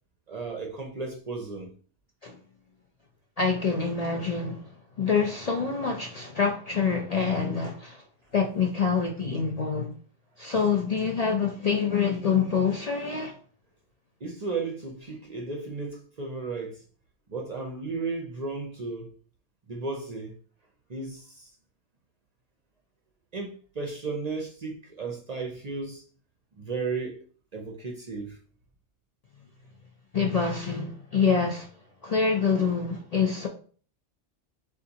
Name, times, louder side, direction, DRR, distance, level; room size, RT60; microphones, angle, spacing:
voice 1, 0.3-1.7 14.2-16.8 17.3-19.1 19.7-20.4 20.9-21.5 23.3-26.0 26.6-27.2 27.5-28.4, right 4 dB, 45° right, 0.6 m, -34 dB
voice 2, 3.4-4.7 5.0-8.0 8.3-9.9 10.4-13.3 30.1-31.7 32.0-33.5, left 5 dB, 45° left, 0.5 m, -26 dB
6.6 x 2.5 x 2.8 m
omnidirectional pair, 1.2 m